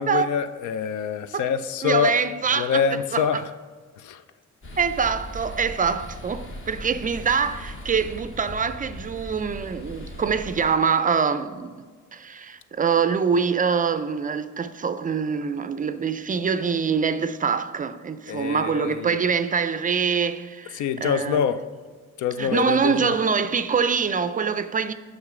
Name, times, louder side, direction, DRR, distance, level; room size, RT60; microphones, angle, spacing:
voice 1, 0.0-2.1 2.5-3.4 4.0-4.2 18.3-19.2 20.7-21.6 22.2-23.2, left 7 dB, 75° left, 0.5 m, -25 dB
voice 2, 1.8-3.4 4.8-11.9 12.1-21.4 22.4-24.9, right 6 dB, 30° right, 0.4 m, -24 dB
sound 1, 4.6-10.7, equal, 40° left, 1.2 m, -39 dB
6.5 x 5.5 x 4.9 m
cardioid pair, 90°, 30 cm